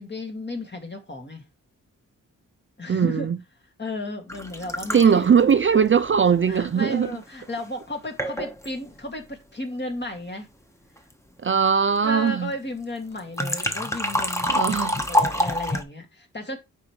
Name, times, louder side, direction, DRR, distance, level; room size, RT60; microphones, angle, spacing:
voice 1, 0.0-1.4 2.8-3.3 3.8-5.3 5.7-5.8 6.5-10.5 12.0-16.6, left 2 dB, 35° left, 2.2 m, -34 dB
voice 2, 2.9-3.4 4.9-7.1 11.4-12.5 14.5-15.0, right 7 dB, 40° right, 0.4 m, -20 dB
sound 1, 4.3-7.1 7.8-7.9 8.2-8.7 13.2-15.8, equal, 10° left, 1.1 m, -27 dB
9.3 x 5.2 x 3.1 m
wide cardioid pair, 90°, 32 cm